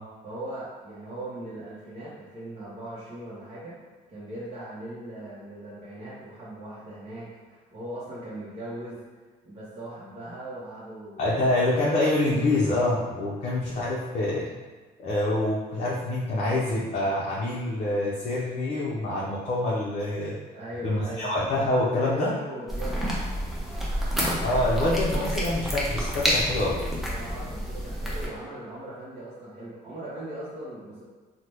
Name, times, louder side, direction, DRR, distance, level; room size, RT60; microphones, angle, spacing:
voice 1, 0.2-3.8 4.1-9.0 9.4-11.5 20.5-21.3 22.0-23.0 27.1-31.0, right 1 dB, 40° right, -9 dB, 0.8 m, -39 dB
voice 2, 11.2-14.5 15.0-20.3 20.8-22.3 24.4-26.8, left 1 dB, 45° left, -6 dB, 0.5 m, -26 dB
sound 1, 22.7-28.3, equal, ahead, 0.6 m, -28 dB
2.8 x 2.1 x 3.3 m, 1.4 s
cardioid pair, 110°, 17 cm